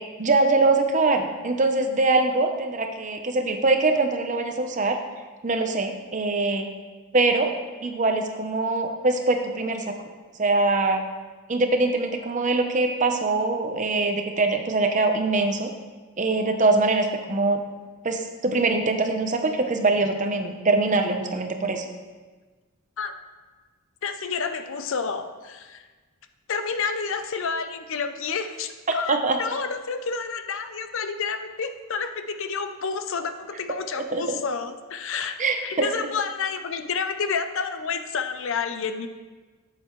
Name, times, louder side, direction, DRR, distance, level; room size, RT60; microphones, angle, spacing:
voice 1, 0.2-5.0 5.4-6.7 7.1-7.5 7.8-9.9 10.4-11.0 11.5-15.7 16.2-17.6 18.0-21.8 28.9-29.4 34.0-34.4 35.4-35.9, right 3 dB, 35° right, 5 dB, 0.8 m, -23 dB
voice 2, 24.0-25.9 26.5-39.1, left 5 dB, 60° left, 9 dB, 0.6 m, -30 dB
12.5 x 7.7 x 3.2 m, 1.3 s
head